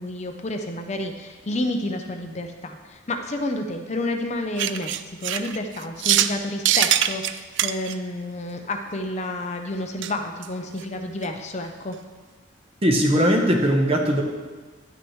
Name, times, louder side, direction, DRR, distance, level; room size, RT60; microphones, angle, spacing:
voice 1, 0.0-12.0, left 1 dB, 35° left, 4 dB, 0.6 m, -30 dB
sound 1, 4.6-6.4 6.7-7.9 10.0-10.1 10.4-10.5 10.8-10.9 11.2-11.3, right 11 dB, 60° right, 0.3 m, -22 dB
voice 2, 12.8-14.2, equal, 30° right, 2 dB, 1.0 m, -19 dB
11.5 x 9.4 x 3.2 m, 1.3 s
head